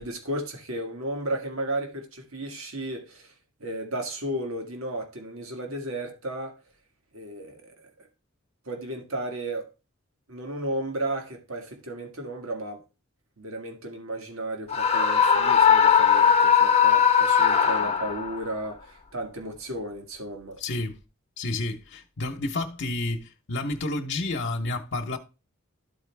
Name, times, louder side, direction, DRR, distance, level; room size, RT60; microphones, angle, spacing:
voice 1, 0.0-3.3 3.6-6.5 7.1-7.9 8.7-9.7 10.3-12.8 13.4-20.6, right 1 dB, 70° right, 1.8 m, -34 dB
Screaming, 14.7-18.4, left 7 dB, 30° left, 0.9 m, -19 dB
voice 2, 20.6-21.0 21.4-25.2, left 2 dB, 60° left, 1.0 m, -30 dB
13.0 x 4.4 x 3.4 m
head